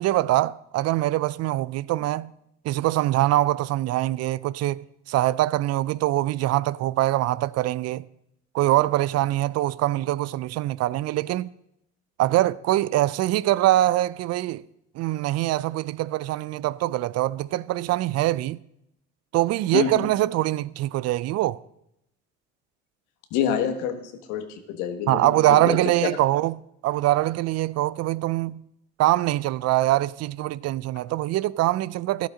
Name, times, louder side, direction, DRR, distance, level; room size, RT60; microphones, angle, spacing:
voice 1, 0.0-2.3 2.6-8.1 8.5-11.5 12.2-14.6 15.0-18.6 19.3-21.6 25.1-26.5 26.8-28.6 29.0-32.3, right 15 dB, 55° right, 0.4 m, -23 dB
voice 2, 19.7-20.1 23.3-25.8, left 8 dB, 80° left, 1.4 m, -27 dB
13.0 x 11.5 x 3.8 m
supercardioid pair, 75°, 30 cm